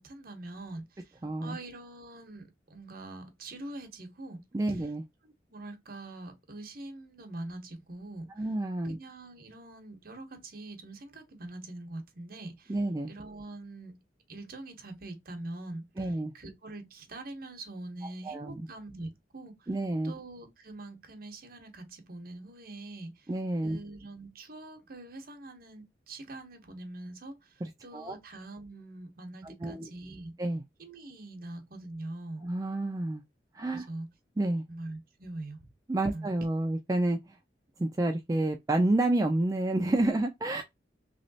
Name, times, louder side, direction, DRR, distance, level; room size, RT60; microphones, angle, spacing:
voice 1, 0.0-4.4 4.7-4.9 5.2-8.5 8.9-12.7 13.1-13.9 14.3-19.7 20.0-23.3 23.6-30.3 30.8-32.4 33.7-34.1 34.7-35.7 36.1-36.3, right 2 dB, 55° right, 0.9 m, -44 dB
voice 2, 1.2-1.6 4.5-5.0 8.4-9.0 12.7-13.1 16.0-16.3 18.2-18.6 19.7-20.1 23.3-23.8 27.6-28.2 29.4-29.9 30.4-30.6 32.4-33.2 33.5-33.9 34.4-34.6 35.9-37.4 37.8-40.6, right 2 dB, 20° right, 0.3 m, -29 dB
3.1 x 3.0 x 2.7 m
head